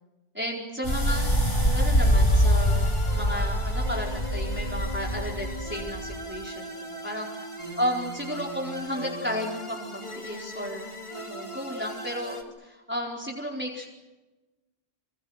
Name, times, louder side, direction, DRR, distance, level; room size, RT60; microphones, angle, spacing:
voice 1, 0.3-1.3 1.7-7.5 7.8-13.9, equal, 10° right, -2 dB, 4.4 m, -33 dB
sound 1, 0.8-6.2, equal, 75° left, 8.0 m, -24 dB
sound 2, 0.9-12.4, equal, 30° left, 3.2 m, -39 dB
27.0 x 26.5 x 6.5 m, 1.1 s
omnidirectional pair, 1.1 m